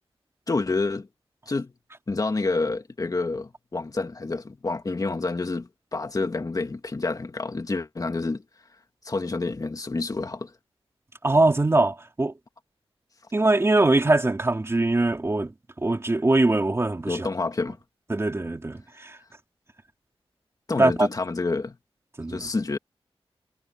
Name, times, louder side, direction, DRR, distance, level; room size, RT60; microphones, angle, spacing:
voice 1, 0.5-1.1 1.5-1.7 2.1-8.4 9.0-10.5 17.1-17.8 20.7-21.8 22.3-22.8, left 3 dB, 35° left, 2.0 m, -28 dB
voice 2, 11.2-12.3 13.3-15.5 15.8-17.3 18.1-19.2 20.8-21.1 22.2-22.4, right 2 dB, 25° right, 3.3 m, -22 dB
wide cardioid pair, 115°, 10 cm